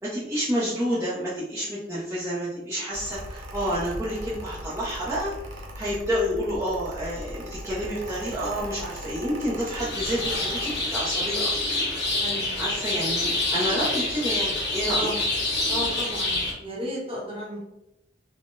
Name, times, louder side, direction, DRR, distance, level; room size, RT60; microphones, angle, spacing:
voice 1, 0.0-5.3 5.8-11.7 12.6-15.2, equal, 15° right, -10 dB, 0.6 m, -29 dB
Mechanical fan, 2.9-10.8, equal, 90° right, 0.6 m, -39 dB
sound 1, 9.8-16.5, left 2 dB, 65° left, 1.3 m, -27 dB
voice 2, 12.2-12.6 14.9-15.2 15.7-17.6, equal, 30° right, -5 dB, 0.9 m, -34 dB
3.6 x 2.1 x 2.5 m, 0.87 s
head